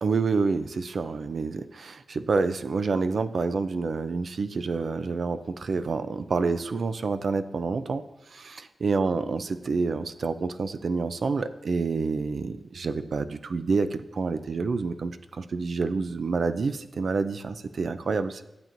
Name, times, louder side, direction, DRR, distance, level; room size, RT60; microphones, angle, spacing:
voice 1, 0.0-8.0 8.3-18.4, right 4 dB, 65° right, 11 dB, 0.4 m, -28 dB
12.0 x 7.5 x 2.6 m, 0.96 s
cardioid pair, 65°, 0 cm